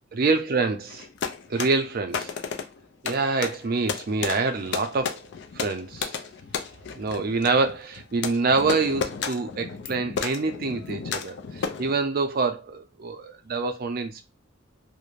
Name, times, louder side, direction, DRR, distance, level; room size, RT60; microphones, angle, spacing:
voice 1, 0.1-1.1 1.5-2.3 3.0-5.2 5.5-6.2 6.9-14.2, right 4 dB, 45° right, 0.4 m, -26 dB
sound 1, 0.9-12.0, left 6 dB, 60° left, 0.3 m, -33 dB
2.4 x 2.1 x 3.0 m
head